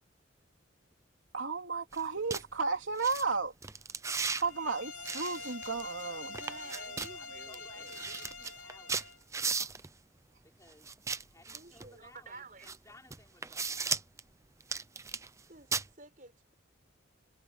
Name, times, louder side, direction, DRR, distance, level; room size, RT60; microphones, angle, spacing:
voice 1, 1.3-3.5 4.4-6.3, right 4 dB, 80° right, 3.2 m, -33 dB
sound 1, 1.9-2.0 2.3-2.4 3.0-3.2 3.6-4.4 5.1-6.0 6.3-7.1 7.5-7.6 7.9-9.9 10.9-11.9 12.6-12.8 13.1-14.2 14.6-15.4 15.7-15.9, right 5 dB, 15° right, 0.6 m, -36 dB
sound 2, 4.4-9.2, left 3 dB, 85° left, 4.6 m, -45 dB
voice 2, 4.5-6.0 6.5-9.0 10.4-14.0, left 2 dB, 15° left, 5.4 m, -60 dB
voice 3, 6.3-8.1 11.5-13.0 15.5-16.5, right 3 dB, 45° right, 6.0 m, -52 dB
head